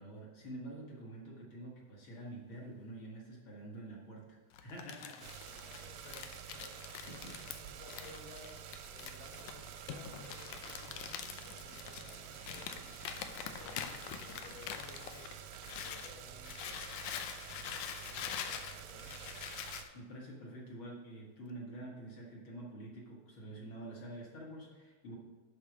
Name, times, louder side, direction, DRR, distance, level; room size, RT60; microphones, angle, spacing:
voice 1, 0.0-4.2 4.6-5.3 7.1-7.3 19.9-25.1, right 1 dB, 50° left, -3 dB, 1.6 m, -47 dB
Crumpling crinkling, 4.5-16.1 16.4-19.9, left 9 dB, 85° left, 1.7 m, -45 dB
sound 1, 5.2-19.8, right 9 dB, 80° right, 2.3 m, -49 dB
voice 2, 5.5-13.9 14.2-17.2 17.5-19.7, left 3 dB, 70° left, 0 dB, 2.9 m, -57 dB
10.5 x 4.2 x 6.0 m, 1.4 s
omnidirectional pair, 4.2 m